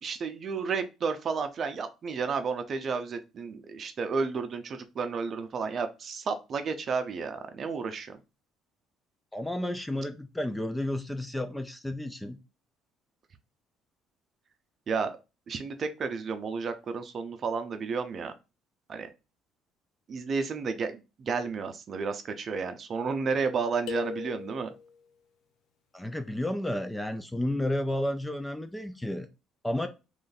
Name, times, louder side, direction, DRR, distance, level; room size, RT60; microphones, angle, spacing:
voice 1, 0.0-8.2 14.9-15.2 15.5-18.3 18.9-19.1 20.1-24.7, right 5 dB, 40° right, 8 dB, 0.6 m, -32 dB
voice 2, 9.3-12.4 25.9-29.3 29.6-29.9, left 1 dB, 5° left, 8 dB, 0.4 m, -32 dB
sound 1, 23.9-25.0, left 5 dB, 70° left, 0.6 m, -37 dB
3.1 x 2.6 x 3.9 m, 0.28 s
cardioid pair, 125°, 0 cm